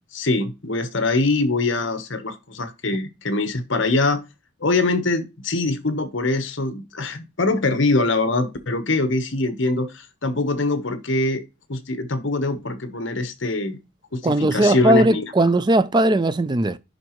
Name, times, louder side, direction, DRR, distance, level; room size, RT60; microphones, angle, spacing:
voice 1, 0.0-4.2 4.6-11.4 11.7-13.8 14.1-15.3, left 2 dB, 60° left, 1.1 m, -23 dB
voice 2, 14.2-16.8, right 1 dB, 20° right, 0.4 m, -18 dB
10.5 x 4.0 x 3.1 m
head